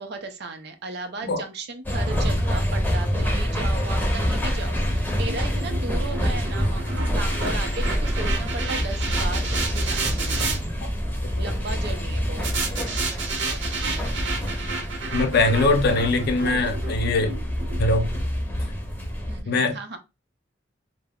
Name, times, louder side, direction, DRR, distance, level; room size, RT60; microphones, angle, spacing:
voice 1, 0.0-10.5 11.4-12.5 16.5-16.8 19.3-20.0, right 3 dB, 60° right, 0.5 m, -36 dB
sound 1, 1.8-19.4, equal, 10° left, 0.7 m, -26 dB
Drum, 2.1-5.0, right 1 dB, 35° right, 0.8 m, -44 dB
sound 2, 4.4-10.6 12.4-18.7, right 4 dB, 90° right, 0.8 m, -32 dB
voice 2, 15.1-17.4 17.8-18.1 19.5-20.0, left 2 dB, 55° left, 0.5 m, -22 dB
2.3 x 2.0 x 3.4 m
head